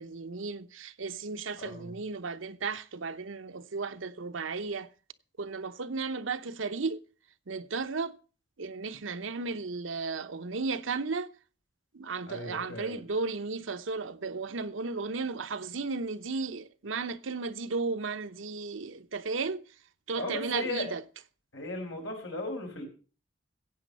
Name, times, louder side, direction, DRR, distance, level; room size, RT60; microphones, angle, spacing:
voice 1, 0.0-4.9 5.4-7.0 7.5-8.2 8.6-11.3 11.9-19.6 20.1-21.0, right 4 dB, 85° right, 0.8 m, -34 dB
voice 2, 1.6-2.0 12.3-13.0 20.1-20.9 21.5-22.9, left 2 dB, 75° left, 5.2 m, -36 dB
15.5 x 8.5 x 5.4 m
head